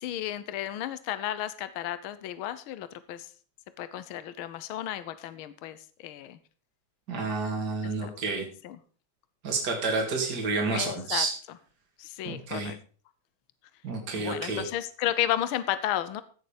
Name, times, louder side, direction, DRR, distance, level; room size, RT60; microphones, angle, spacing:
voice 1, 0.0-3.3 3.8-6.4 7.8-8.1 8.6-8.8 10.7-11.3 12.0-12.8 14.2-16.2, left 12 dB, 75° left, 13 dB, 1.6 m, -33 dB
voice 2, 7.1-8.4 9.4-11.3 12.2-12.7 13.8-14.6, right 3 dB, 50° right, 2 dB, 2.9 m, -29 dB
16.0 x 6.6 x 5.1 m, 0.40 s
omnidirectional pair, 2.4 m